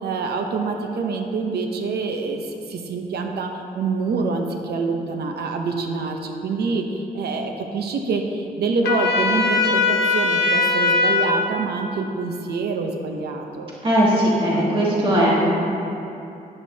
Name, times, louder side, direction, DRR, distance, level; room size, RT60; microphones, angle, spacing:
voice 1, 0.0-13.7, right 4 dB, 90° right, 3 dB, 0.8 m, -26 dB
Trumpet, 8.8-11.3, left 3 dB, 85° left, 1.1 m, -20 dB
voice 2, 13.8-15.3, equal, 35° right, -7 dB, 2.3 m, -18 dB
11.0 x 11.0 x 2.8 m, 2.7 s
wide cardioid pair, 180°, 16 cm